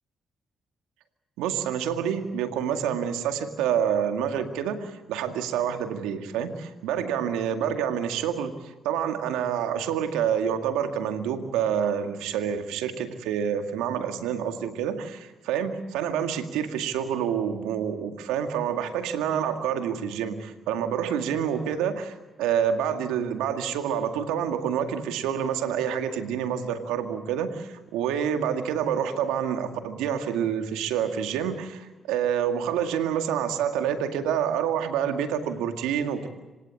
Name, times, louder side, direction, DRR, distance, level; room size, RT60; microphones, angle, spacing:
voice 1, 1.4-36.3, right 8 dB, 85° right, 7 dB, 2.1 m, -27 dB
26.5 x 18.0 x 8.4 m, 1.2 s
supercardioid pair, 50°, 0 cm